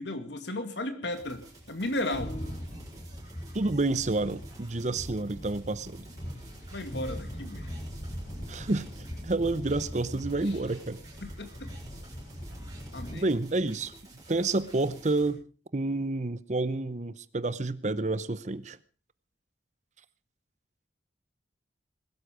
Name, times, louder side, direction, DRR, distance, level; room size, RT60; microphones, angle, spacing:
voice 1, 0.0-2.4 6.7-7.7 10.5-10.6 11.2-11.7 12.9-13.3, left 1 dB, 70° left, 8 dB, 2.2 m, -35 dB
sound 1, 1.1-15.3, right 2 dB, 20° right, 7.1 m, -52 dB
sound 2, 2.1-13.2, equal, 45° left, 4.4 m, -41 dB
voice 2, 3.5-6.0 8.5-8.9 9.2-11.0 13.1-13.9 14.3-15.4 15.7-18.8, right 2 dB, 40° right, 16 dB, 0.7 m, -29 dB
20.5 x 12.5 x 5.0 m, 0.37 s
head